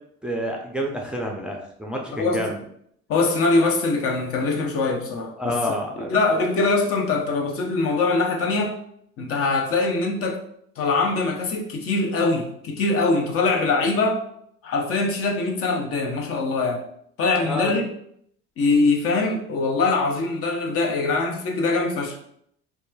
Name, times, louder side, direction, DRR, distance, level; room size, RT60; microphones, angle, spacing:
voice 1, 0.2-2.6 5.4-6.1 17.4-17.7, equal, 5° right, 0 dB, 0.4 m, -28 dB
voice 2, 2.1-2.5 3.1-5.6 6.1-8.7 9.2-10.4 10.8-14.2 14.6-16.8 17.2-17.8 18.6-22.2, left 3 dB, 50° left, 1 dB, 0.6 m, -22 dB
2.9 x 2.2 x 2.2 m, 0.69 s
supercardioid pair, 80°, 29 cm